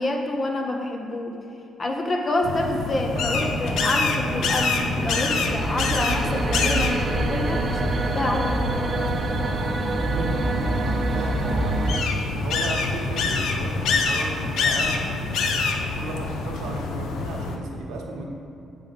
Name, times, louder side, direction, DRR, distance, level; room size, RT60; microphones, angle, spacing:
voice 1, 0.0-1.4 1.8-8.6, left 1 dB, 35° left, 2 dB, 0.7 m, -27 dB
sound 1, 2.4-17.6, left 4 dB, 80° left, 0.6 m, -26 dB
sound 2, 3.1-12.0, right 3 dB, 40° right, 0.4 m, -27 dB
voice 2, 10.0-11.9 12.3-18.3, right 2 dB, 85° right, 1 dB, 1.0 m, -35 dB
9.3 x 3.6 x 5.4 m, 2.5 s
cardioid pair, 90°, 0 cm